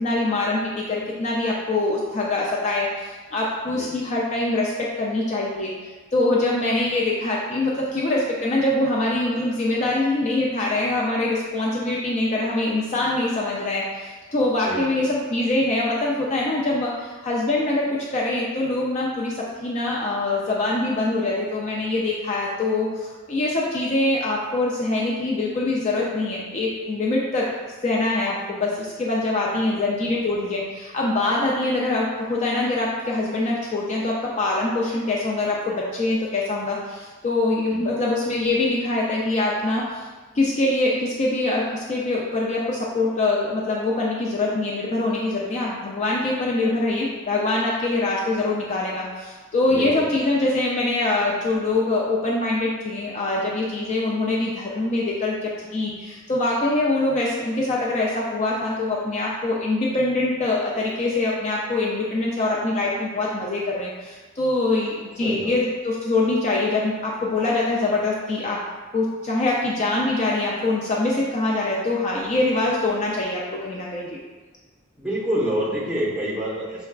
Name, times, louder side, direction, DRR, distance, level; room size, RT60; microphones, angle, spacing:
voice 1, 0.0-5.7 6.1-27.5 27.8-40.0 40.3-68.6 68.9-74.2, left 2 dB, 35° left, -3 dB, 0.3 m, -24 dB
voice 2, 14.6-15.0 29.7-29.8 37.7-38.0 49.7-50.1 65.2-65.6 75.0-76.9, right 1 dB, 5° right, -7 dB, 0.7 m, -27 dB
5.4 x 2.2 x 2.3 m, 1.4 s
head